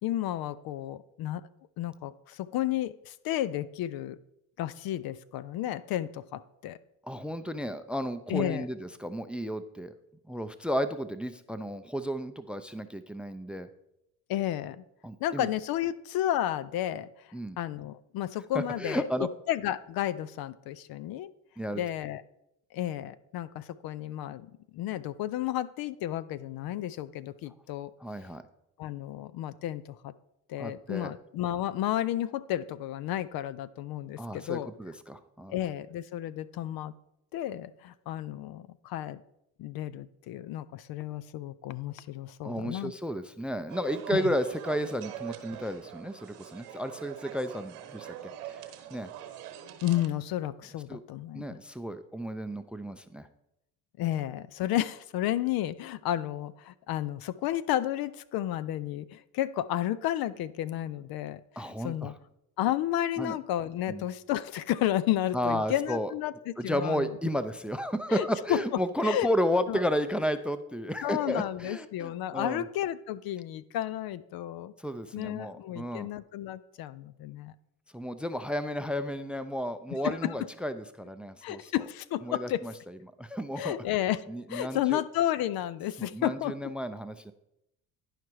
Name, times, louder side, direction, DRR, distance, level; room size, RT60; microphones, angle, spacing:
voice 1, 0.0-1.5 1.8-4.2 4.6-6.8 8.3-8.7 14.3-14.8 15.2-21.3 21.7-22.2 22.7-27.9 28.8-30.1 30.5-34.7 35.5-36.9 37.3-39.2 39.6-42.9 44.1-44.3 49.8-51.6 54.0-62.1 62.6-67.2 68.1-68.6 69.0-69.3 69.7-69.9 71.0-74.7 75.1-77.5 80.0-80.3 81.4-82.6 83.6-86.7, left 13 dB, 55° left, 17 dB, 0.5 m, -32 dB
voice 2, 7.0-9.9 10.3-13.7 15.0-15.5 17.3-17.6 18.5-19.3 21.6-21.8 28.0-28.4 30.6-31.1 34.2-35.5 42.4-48.2 48.9-49.1 50.9-51.0 51.3-53.3 61.6-62.1 63.2-63.4 63.9-64.0 65.3-66.1 66.6-72.6 74.8-76.1 77.9-81.6 82.2-82.7 83.2-83.8 84.3-85.0 86.0-87.3, equal, 5° right, 12 dB, 0.4 m, -32 dB
sound 1, 43.7-50.1, right 10 dB, 85° right, 1.1 m, -43 dB
11.0 x 4.9 x 4.6 m, 0.83 s
supercardioid pair, 70°, 44 cm